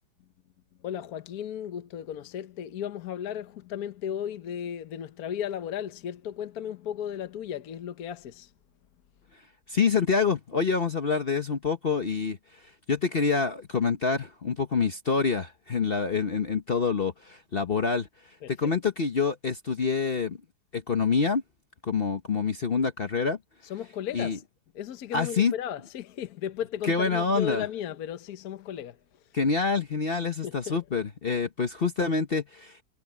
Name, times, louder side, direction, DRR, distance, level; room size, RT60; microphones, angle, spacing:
voice 1, 0.8-8.5 18.4-18.5 23.7-24.4 24.7-29.0 30.4-31.0, left 9 dB, 60° left, 1.3 m, -35 dB
voice 2, 9.7-12.6 12.9-18.1 18.5-20.4 20.7-21.4 21.8-23.4 24.1-24.4 25.1-25.5 26.8-27.6 29.3-32.8, left 5 dB, 40° left, 1.0 m, -26 dB
omnidirectional pair, 1.9 m